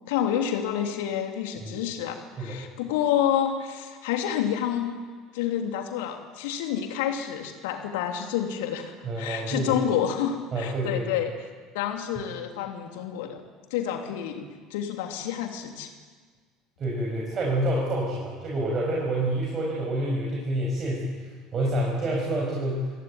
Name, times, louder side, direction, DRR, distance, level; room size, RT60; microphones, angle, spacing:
voice 1, 0.0-4.9 5.3-11.5 11.7-13.4 13.7-15.9, left 9 dB, 65° left, 4 dB, 3.2 m, -29 dB
voice 2, 9.0-9.9 10.5-11.0 16.8-21.1 21.5-22.9, right 1 dB, 35° right, -3 dB, 6.7 m, -28 dB
27.0 x 17.5 x 9.3 m, 1.5 s
figure-of-eight pair, 65°, 0 cm